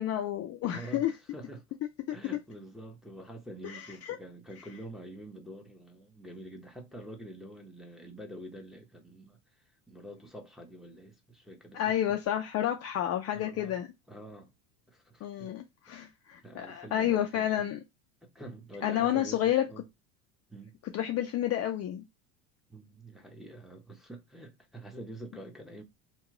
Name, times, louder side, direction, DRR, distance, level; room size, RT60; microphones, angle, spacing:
voice 1, 0.0-1.1 2.1-2.2 3.6-4.2 11.7-13.9 15.2-17.8 18.8-19.6 20.9-22.0, left 11 dB, 35° left, 0.4 m, -30 dB
voice 2, 0.7-1.7 2.1-9.4 9.9-12.2 13.3-13.8 14.1-14.5 14.9-15.5 15.9-16.0 16.4-17.7 18.2-19.9 20.5-20.8 22.7-25.8, right 1 dB, ahead, 0.8 m, -46 dB
2.9 x 2.3 x 3.6 m
hypercardioid pair, 85°, 47 cm